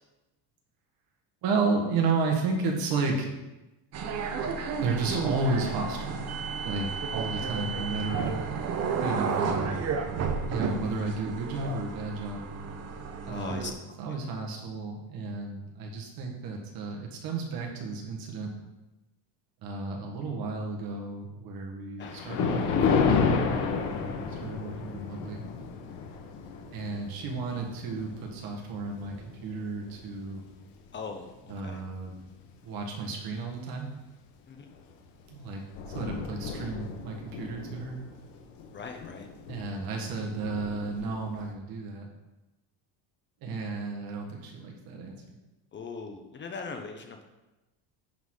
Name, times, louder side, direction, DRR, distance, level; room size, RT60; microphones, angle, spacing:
voice 1, 1.4-3.4 4.8-6.2 6.6-8.3 9.0-9.8 10.5-12.5 13.2-13.7 14.0-18.5 19.6-23.3 23.9-25.4 26.7-29.1 29.4-30.4 31.5-32.1 32.6-33.9 35.3-35.6 35.9-38.0 39.5-42.1 43.4-45.4, right 3 dB, 55° right, 1 dB, 1.7 m, -32 dB
sound 1, 3.9-13.7, right 5 dB, 35° right, 0.8 m, -32 dB
voice 2, 13.2-13.8 22.0-22.1 30.9-31.8 34.5-34.7 38.7-39.3 45.7-47.2, left 4 dB, 25° left, 4 dB, 0.7 m, -40 dB
Thunder, 22.0-30.5 31.1-31.3 32.0-32.1 32.5-32.6 34.7-34.9 35.3-35.4 35.5-41.5, left 5 dB, 75° left, 1.5 m, -32 dB
10.5 x 4.1 x 4.9 m, 1.0 s
cardioid pair, 150°, 42 cm